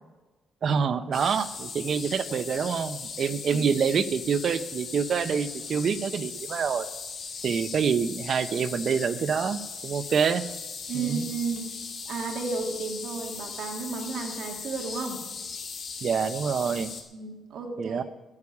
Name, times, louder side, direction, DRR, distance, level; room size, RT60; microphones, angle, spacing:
voice 1, 0.6-6.9 7.4-10.4 10.9-11.3 16.0-16.9 17.8-18.0, right 6 dB, 45° right, 12 dB, 0.7 m, -26 dB
sound 1, 1.1-17.0, left 5 dB, 45° left, 2.3 m, -38 dB
voice 2, 10.9-11.7 12.0-15.2 17.1-18.0, right 4 dB, 60° right, 2 dB, 2.1 m, -33 dB
9.6 x 8.7 x 9.6 m, 1.1 s
cardioid pair, 155°, 0 cm